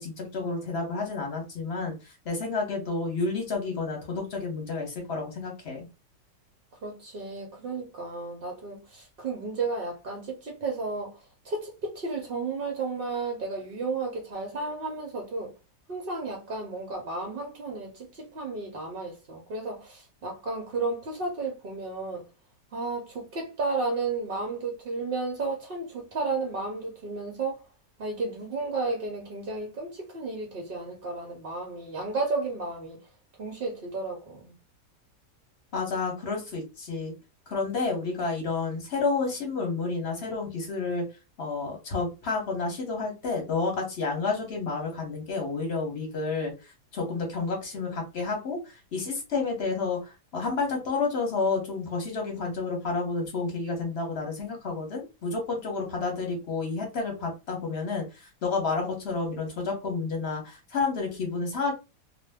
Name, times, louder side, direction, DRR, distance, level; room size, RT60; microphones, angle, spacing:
voice 1, 0.0-5.9 35.7-37.1 37.5-41.0 41.4-61.7, left 4 dB, 45° left, 1.1 m, -30 dB
voice 2, 6.8-11.2 11.4-15.5 15.9-22.2 22.7-27.6 28.0-33.0 33.4-34.6, right 3 dB, 60° right, 0.6 m, -33 dB
2.7 x 2.1 x 3.4 m
omnidirectional pair, 1.8 m